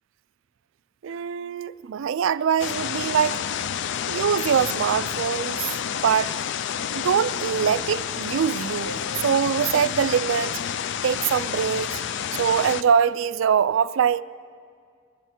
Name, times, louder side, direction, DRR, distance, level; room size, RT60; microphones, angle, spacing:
voice 1, 1.0-3.4 4.1-6.3 6.9-10.6 11.0-12.0 12.3-14.2, right 7 dB, 70° right, 0.3 m, -23 dB
sound 1, 2.6-12.8, left 8 dB, 60° left, 0.4 m, -29 dB
sound 2, 8.9-10.1, left 1 dB, 90° left, 2.4 m, -45 dB
23.0 x 11.0 x 4.4 m
head